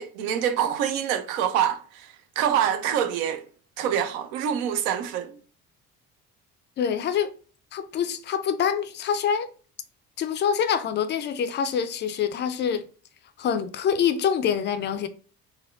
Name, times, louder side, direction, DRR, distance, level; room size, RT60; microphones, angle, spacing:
voice 1, 0.0-2.1 2.4-3.4 3.8-5.3, right 9 dB, 70° right, 0.6 m, -25 dB
voice 2, 6.8-7.3 7.7-9.5 10.2-12.8 13.4-15.1, left 7 dB, 25° left, 0.4 m, -25 dB
4.2 x 2.2 x 2.4 m
figure-of-eight pair, 55°, 44 cm